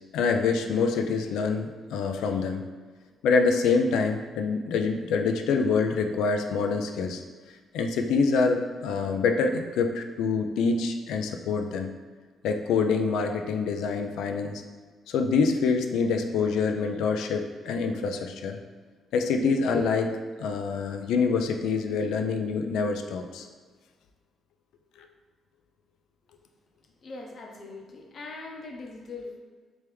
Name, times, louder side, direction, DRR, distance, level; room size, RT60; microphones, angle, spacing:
voice 1, 0.1-2.6 3.2-7.2 7.7-11.9 12.4-14.6 15.1-18.6 19.1-20.1 20.4-23.5 25.0-25.1, left 4 dB, 85° left, 5 dB, 0.3 m, -26 dB
voice 2, 27.0-29.4, left 3 dB, 50° left, 0 dB, 0.7 m, -41 dB
3.3 x 3.1 x 3.4 m, 1.5 s
cardioid pair, 90°, 0 cm